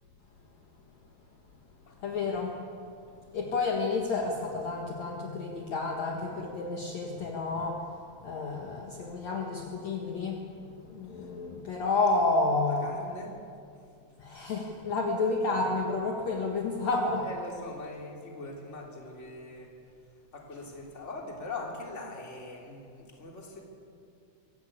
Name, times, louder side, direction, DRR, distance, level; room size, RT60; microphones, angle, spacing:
voice 1, 2.0-2.6 3.3-7.8 8.2-10.4 10.9-12.9 14.2-17.3, left 3 dB, 60° left, 0 dB, 1.8 m, -30 dB
voice 2, 12.6-13.3 17.2-19.7 20.3-23.6, left 2 dB, 20° left, -1 dB, 2.6 m, -42 dB
24.0 x 16.5 x 8.7 m, 2.5 s
omnidirectional pair, 5.7 m